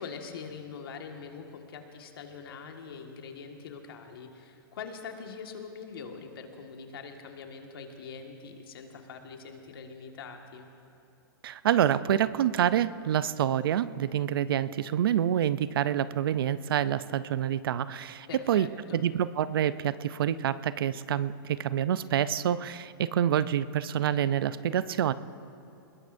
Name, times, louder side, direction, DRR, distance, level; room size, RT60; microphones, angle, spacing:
voice 1, 0.0-10.7 18.3-19.0, left 5 dB, 75° left, 3 dB, 1.7 m, -43 dB
voice 2, 11.4-18.7 18.9-25.1, right 10 dB, 75° right, 16 dB, 0.5 m, -27 dB
21.0 x 21.0 x 2.6 m, 2.8 s
hypercardioid pair, 145°, 12 cm